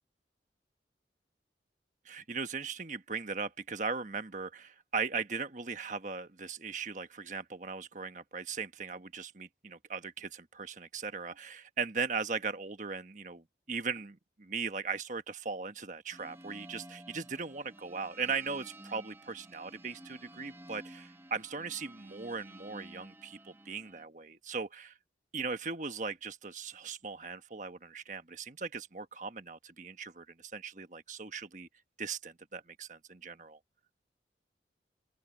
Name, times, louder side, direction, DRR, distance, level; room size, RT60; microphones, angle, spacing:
voice 1, 2.0-24.9 25.3-31.7 32.0-33.6, right 5 dB, 45° right, 1.3 m, -38 dB
sound 1, 16.1-24.0, right 1 dB, 10° right, 1.0 m, -52 dB
open air
head